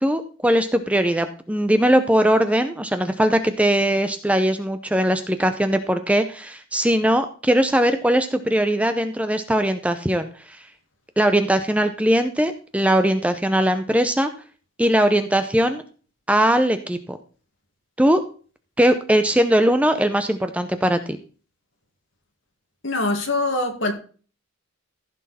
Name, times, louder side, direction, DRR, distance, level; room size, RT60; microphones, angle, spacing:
voice 1, 0.0-10.6 11.2-14.3 14.8-15.8 16.3-17.2 18.0-18.2 18.8-21.0, right 1 dB, 5° right, 8 dB, 0.6 m, -20 dB
voice 2, 22.8-23.9, left 2 dB, 60° left, 3 dB, 2.2 m, -23 dB
15.0 x 6.3 x 4.2 m, 0.39 s
head